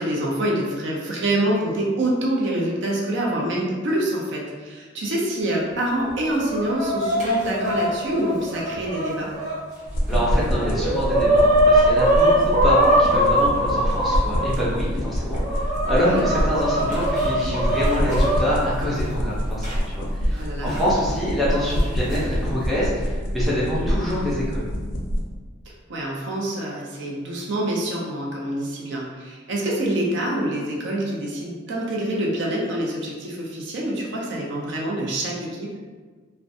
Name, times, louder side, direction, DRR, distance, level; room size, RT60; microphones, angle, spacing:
voice 1, 0.0-9.3 15.9-16.3 20.3-20.8 23.8-24.0 25.9-35.7, right 1 dB, 60° right, -3 dB, 0.4 m, -26 dB
Chicken rooster, 6.1-9.5 10.1-10.2 10.5-14.5 15.1-18.4 19.6-19.7 20.7-20.8 21.8-22.1, equal, 35° right, 0.8 m, -21 dB
wingflap fast, 9.9-25.2, equal, 60° left, 0.4 m, -26 dB
voice 2, 10.1-24.6, equal, ahead, -9 dB, 0.5 m, -26 dB
2.4 x 2.1 x 2.6 m, 1.5 s
head